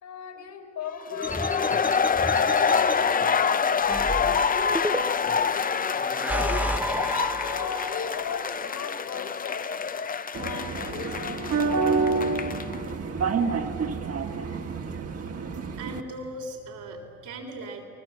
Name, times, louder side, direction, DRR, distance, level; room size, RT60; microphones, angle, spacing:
voice 1, 0.0-4.1 4.8-5.8 6.2-6.6 7.5-9.7 10.4-12.4, left 7 dB, 75° left, 6 dB, 4.5 m, -38 dB
sound 1, 1.1-12.8, left 6 dB, 30° left, 0.6 m, -26 dB
sound 2, 1.2-3.0 3.9-5.4 6.0-8.2, right 1 dB, 5° right, 0.8 m, -32 dB
sound 3, 10.3-16.0, right 4 dB, 50° right, 1.8 m, -28 dB
voice 2, 15.8-17.8, right 1 dB, 80° right, 2 dB, 3.9 m, -38 dB
29.5 x 20.5 x 7.9 m, 2.5 s
cardioid pair, 90°, 30 cm